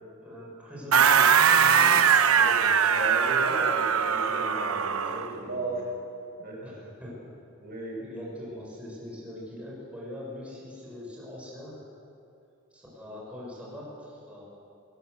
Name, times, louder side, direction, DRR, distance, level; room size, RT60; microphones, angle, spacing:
voice 1, 0.2-2.1 4.5-6.0 6.6-7.3 8.0-11.8 12.7-14.4, left 1 dB, 5° right, -5 dB, 6.8 m, -42 dB
sound 1, 0.9-5.3, right 7 dB, 75° right, 1.0 m, -21 dB
voice 2, 2.3-5.8 6.4-6.8 7.6-8.0 13.0-13.2, right 2 dB, 45° right, -3 dB, 6.9 m, -36 dB
22.0 x 19.5 x 8.1 m, 2.6 s
head